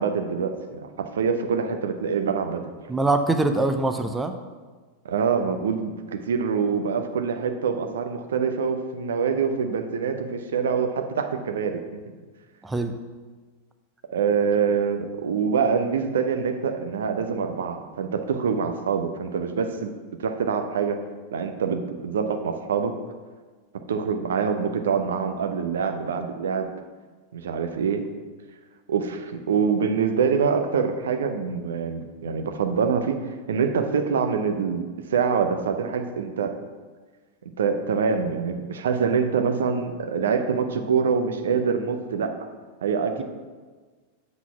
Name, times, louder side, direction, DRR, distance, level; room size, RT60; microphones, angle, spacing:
voice 1, 0.0-2.7 5.0-12.0 14.1-19.9 20.2-21.0 21.3-22.9 23.9-26.7 27.3-28.0 28.9-34.8 35.1-36.5 37.6-42.4 42.8-43.2, right 6 dB, 65° right, 6 dB, 0.6 m, -25 dB
voice 2, 2.9-4.4 12.6-12.9, right 2 dB, 10° right, 7 dB, 0.5 m, -23 dB
7.4 x 4.0 x 5.7 m, 1.4 s
figure-of-eight pair, 90°, 0 cm